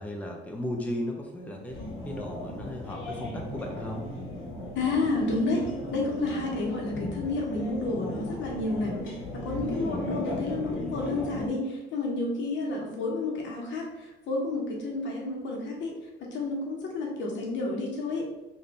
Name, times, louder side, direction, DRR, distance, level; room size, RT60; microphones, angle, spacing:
voice 1, 0.0-1.8 2.0-4.0 9.6-10.1, left 1 dB, 10° left, 1 dB, 0.5 m, -36 dB
sound 1, 1.7-11.5, left 1 dB, 90° left, 1.2 m, -36 dB
voice 2, 4.7-5.6 5.9-8.9 9.3-15.9 16.2-18.3, left 2 dB, 70° left, -1 dB, 1.1 m, -30 dB
3.2 x 2.6 x 4.1 m, 1.0 s
cardioid pair, 110°, 19 cm